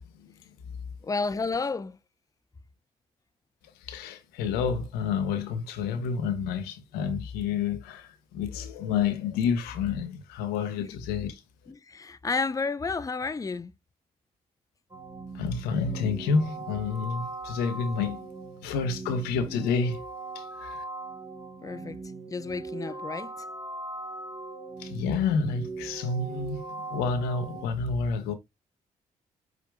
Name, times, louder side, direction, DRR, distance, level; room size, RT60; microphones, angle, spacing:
voice 1, 1.0-2.0 10.8-10.9 11.7-13.7 21.6-22.0 22.3-23.5, left 4 dB, 20° left, 0.5 m, -31 dB
voice 2, 3.8-11.4 15.3-18.3 18.6-20.0 20.3-20.8 24.8-28.3, left 5 dB, 90° left, 0.8 m, -29 dB
sound 1, 14.9-27.7, right 3 dB, 25° right, 1.5 m, -40 dB
5.0 x 4.8 x 2.2 m
supercardioid pair, 55°, 16 cm